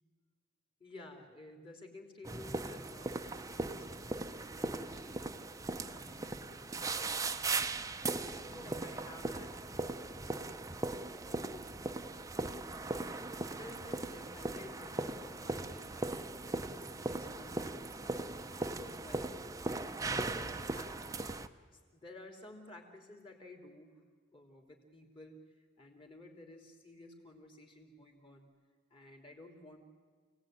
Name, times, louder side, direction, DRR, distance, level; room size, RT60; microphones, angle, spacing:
voice 1, 0.8-7.0 8.0-9.6 9.9-10.9 11.2-12.1 13.5-19.4 20.1-21.3 21.7-24.0 24.3-28.5 28.9-29.8, left 2 dB, 25° left, 3 dB, 3.2 m, -54 dB
sound 1, 2.2-21.5, right 2 dB, 15° right, 0.7 m, -39 dB
28.5 x 18.0 x 9.2 m, 1.5 s
head